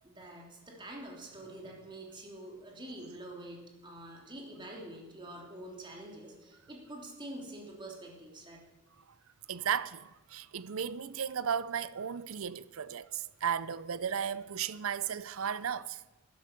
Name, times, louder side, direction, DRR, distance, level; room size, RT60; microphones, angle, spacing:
voice 1, 0.0-8.6, right 1 dB, 25° right, 3.1 m, -46 dB
voice 2, 9.5-16.0, right 7 dB, 75° right, 0.6 m, -35 dB
12.5 x 10.5 x 6.6 m
head